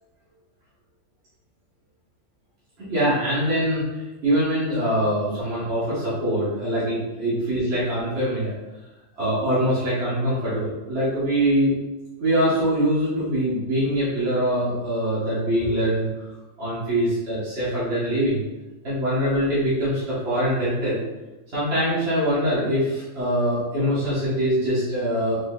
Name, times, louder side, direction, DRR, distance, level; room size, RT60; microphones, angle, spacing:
voice 1, 2.8-8.5 9.2-11.7 12.2-16.1 16.6-18.4 18.8-21.0 21.5-25.4, equal, 55° right, -10 dB, 1.7 m, -23 dB
4.9 x 4.2 x 2.4 m, 1.1 s
omnidirectional pair, 1.3 m